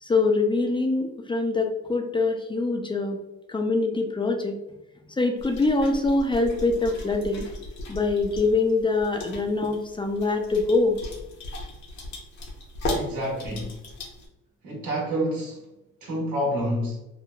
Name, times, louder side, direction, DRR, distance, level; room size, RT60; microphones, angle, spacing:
voice 1, 0.0-3.2 3.5-4.6 5.2-7.5 7.9-11.0, left 3 dB, 15° left, 3 dB, 0.3 m, -24 dB
sound 1, 5.4-14.3, left 1 dB, 65° left, 0.8 m, -36 dB
voice 2, 12.9-13.8 14.6-15.7 16.0-17.0, equal, 80° right, -3 dB, 1.1 m, -28 dB
3.0 x 2.1 x 2.3 m, 0.93 s
cardioid pair, 90°, 30 cm